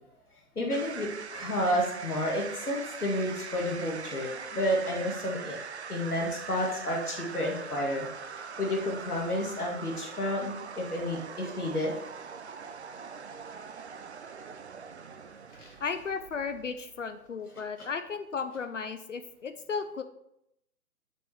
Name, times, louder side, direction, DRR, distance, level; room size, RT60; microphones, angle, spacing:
voice 1, 0.6-1.1 1.3-5.6 5.9-8.0 8.4-11.9 15.6-15.7, left 1 dB, 80° left, -1 dB, 2.1 m, -30 dB
sound 1, 0.7-17.1, right 6 dB, 50° right, 0.5 m, -42 dB
voice 2, 15.8-20.0, left 5 dB, 55° left, 9 dB, 0.6 m, -35 dB
7.2 x 6.1 x 3.4 m, 0.80 s
figure-of-eight pair, 135°, 44 cm